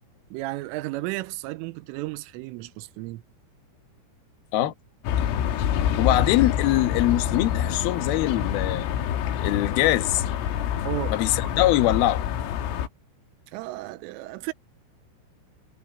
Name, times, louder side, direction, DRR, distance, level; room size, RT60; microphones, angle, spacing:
voice 1, 0.3-3.2 10.8-11.2 13.5-14.5, right 19 dB, 90° right, 3.3 m, -33 dB
sound 1, 5.0-12.9, left 9 dB, 80° left, 4.4 m, -26 dB
voice 2, 6.0-8.9 9.4-10.2 11.1-12.2, left 14 dB, 65° left, 2.7 m, -23 dB
omnidirectional pair, 5.8 m